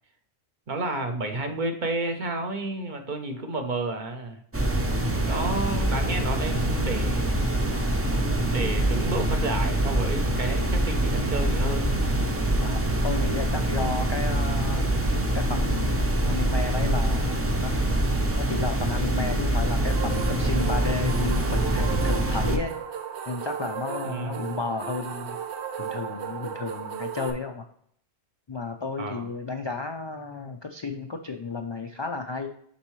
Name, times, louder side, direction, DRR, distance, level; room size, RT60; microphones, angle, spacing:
voice 1, 0.7-4.4 5.2-7.4 8.5-12.0 24.0-24.6 29.0-29.3, right 2 dB, 50° right, 5 dB, 0.9 m, -31 dB
sound 1, 4.5-22.6, right 1 dB, 20° right, 0.4 m, -25 dB
voice 2, 5.0-5.4 12.6-14.9 15.3-16.0 16.3-17.4 17.6-17.7 18.4-22.8 23.3-25.4 25.8-27.6 28.5-32.5, left 3 dB, 45° left, 5 dB, 0.3 m, -33 dB
sound 2, 19.9-27.3, right 8 dB, 85° right, 1.0 m, -35 dB
6.9 x 5.4 x 3.1 m, 0.66 s
omnidirectional pair, 1.1 m